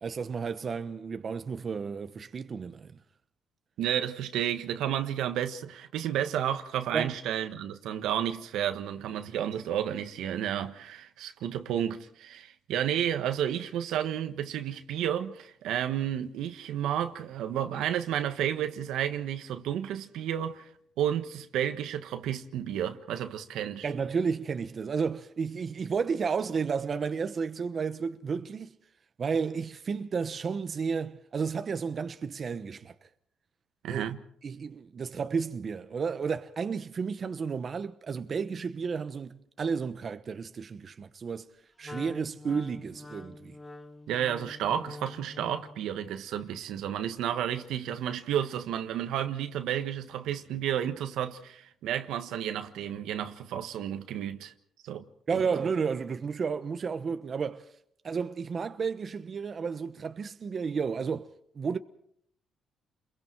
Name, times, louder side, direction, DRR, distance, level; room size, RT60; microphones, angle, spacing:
voice 1, 0.0-3.0 6.9-7.2 23.8-28.7 29.2-33.1 33.9-34.1 34.4-41.5 41.8-43.6 55.3-57.7 58.0-61.8, right 5 dB, 45° right, 1.1 m, -32 dB
voice 2, 3.8-20.7 21.0-23.9 33.8-34.2 44.1-54.5 54.8-55.0 55.3-55.4, right 10 dB, 85° right, 1.4 m, -31 dB
Wind instrument woodwind instrument, 41.8-45.9, left 2 dB, 20° left, 1.5 m, -45 dB
30.0 x 22.5 x 4.7 m
cardioid pair, 90°, 0 cm